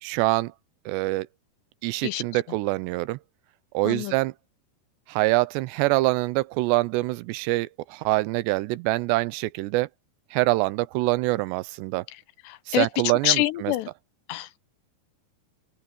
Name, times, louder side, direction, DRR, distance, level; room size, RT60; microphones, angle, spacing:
voice 1, 0.0-0.5 0.9-1.3 1.8-3.2 3.7-4.3 5.1-9.9 10.3-12.1 12.7-13.7, right 20 dB, 90° right, 2.9 m, -25 dB
voice 2, 2.0-2.4 3.8-4.1 12.5-13.9 14.3-14.6, left 16 dB, 85° left, 3.1 m, -26 dB
open air
omnidirectional pair, 4.9 m